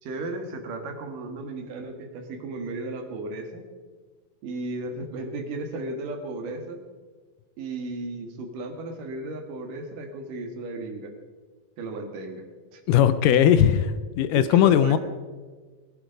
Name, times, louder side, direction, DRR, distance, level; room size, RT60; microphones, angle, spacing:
voice 1, 0.0-3.7 4.4-6.8 7.6-11.1 11.8-12.4 12.7-12.8 14.3-15.0, right 2 dB, 70° right, 5 dB, 3.2 m, -34 dB
voice 2, 12.9-15.0, left 10 dB, 80° left, 13 dB, 2.2 m, -19 dB
20.0 x 11.5 x 5.2 m, 1.4 s
omnidirectional pair, 4.0 m